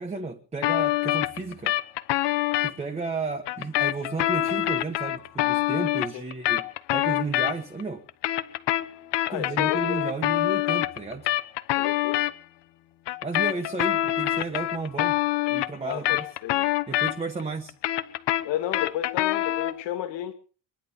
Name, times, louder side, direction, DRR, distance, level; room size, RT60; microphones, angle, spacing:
voice 1, 0.0-1.8 2.6-8.0 9.3-11.3 13.2-15.2 15.5-16.3 16.9-17.7, right 4 dB, 15° right, 1.2 m, -33 dB
sound 1, 0.6-2.7 3.5-7.8 8.1-12.3 13.1-17.4 17.7-19.8, left 15 dB, 75° left, 1.1 m, -25 dB
voice 2, 9.3-10.0 11.8-12.2 15.8-16.7 18.4-20.3, left 12 dB, 90° left, 2.4 m, -33 dB
24.0 x 11.0 x 5.4 m
cardioid pair, 175°, 43 cm